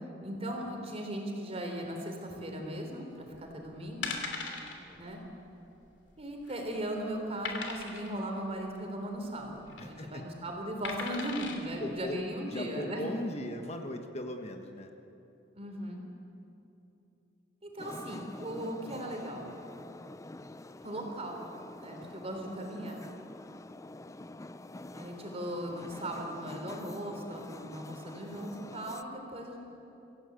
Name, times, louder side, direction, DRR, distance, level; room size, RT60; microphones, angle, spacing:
voice 1, 0.2-4.2 5.0-5.2 6.2-13.1 15.5-16.0 17.6-19.4 20.8-21.4 21.8-23.0 24.9-29.6, right 1 dB, 35° right, 2 dB, 3.9 m, -38 dB
sound 1, 3.4-3.5 4.0-4.7 5.1-5.3 5.5-5.6 6.2-6.7 7.4-8.1 9.5-9.8 10.8-11.6 12.2-12.3, left 4 dB, 80° left, 3.0 m, -38 dB
voice 2, 4.5-5.2 9.8-10.2 11.8-12.2 12.5-14.9 23.6-23.8, left 1 dB, 35° left, 5 dB, 1.3 m, -39 dB
sound 2, 17.8-29.0, left 2 dB, 15° left, 0.5 m, -47 dB
26.0 x 16.0 x 8.3 m, 2.9 s
head